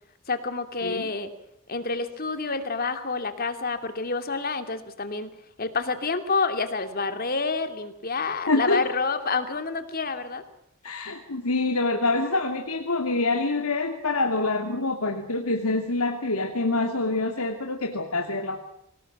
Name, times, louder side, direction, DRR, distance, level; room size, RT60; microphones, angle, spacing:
voice 1, 0.3-1.3 1.7-5.3 5.6-10.4, left 4 dB, 45° left, 8 dB, 2.8 m, -28 dB
voice 2, 8.5-8.8 10.8-18.6, left 2 dB, 85° left, 4 dB, 2.6 m, -26 dB
25.5 x 19.5 x 7.4 m, 0.76 s
head